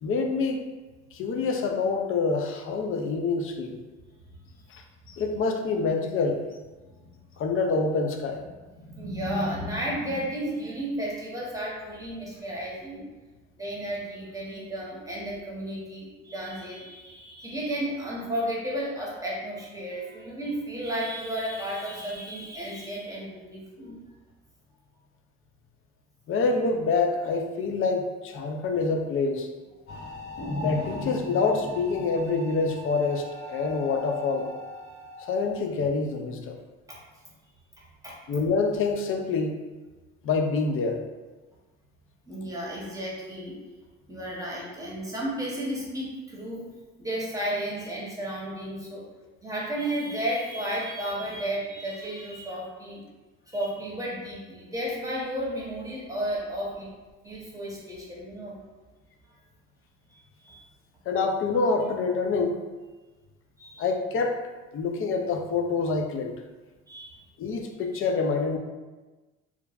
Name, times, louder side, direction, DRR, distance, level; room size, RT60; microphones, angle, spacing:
voice 1, 0.0-0.6 1.1-3.8 4.7-6.4 7.4-8.4 26.3-29.5 30.6-34.5 35.3-36.6 38.3-39.5 40.2-41.0 61.1-62.6 63.8-64.4 64.7-66.3 67.4-68.6, left 4 dB, 45° left, 4 dB, 0.4 m, -26 dB
voice 2, 8.7-13.0 13.6-24.0 36.9-37.0 38.0-38.1 42.3-43.5 44.1-46.7 47.0-49.0 49.4-53.0 53.5-56.9 57.2-58.6 60.1-60.6 63.6-63.8 66.9-67.2, right 1 dB, 10° right, -5 dB, 0.9 m, -33 dB
sound 1, 29.9-35.6, equal, 60° left, 1.1 m, -38 dB
3.1 x 2.2 x 2.3 m, 1.2 s
supercardioid pair, 85°, 31 cm